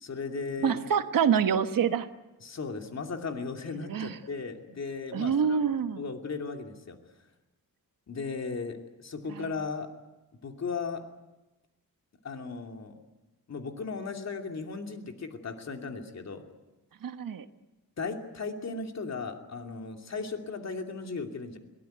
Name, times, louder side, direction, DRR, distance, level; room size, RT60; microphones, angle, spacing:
voice 1, 0.0-0.8 2.4-5.6 6.0-7.0 8.1-9.9 10.4-11.1 12.2-13.0 13.5-16.5 18.0-21.6, left 4 dB, 45° left, 4 dB, 2.8 m, -36 dB
voice 2, 0.6-2.1 3.8-4.2 5.1-6.0 9.3-9.4 17.0-17.4, right 7 dB, 65° right, 9 dB, 1.3 m, -26 dB
22.0 x 18.5 x 9.4 m, 1.1 s
wide cardioid pair, 125°, 36 cm